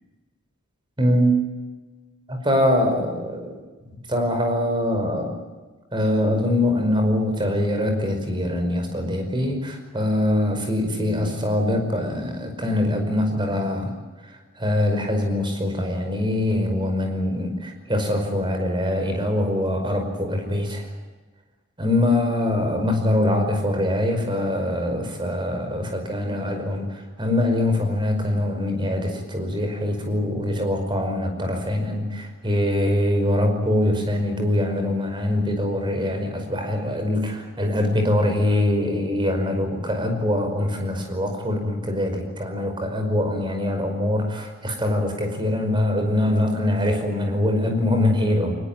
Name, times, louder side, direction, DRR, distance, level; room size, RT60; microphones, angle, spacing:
voice 1, 1.0-1.3 2.3-3.5 4.1-5.3 5.9-13.9 14.6-20.9 21.8-48.6, left 1 dB, 20° right, 5 dB, 5.3 m, -23 dB
22.5 x 21.0 x 9.1 m, 1.3 s
head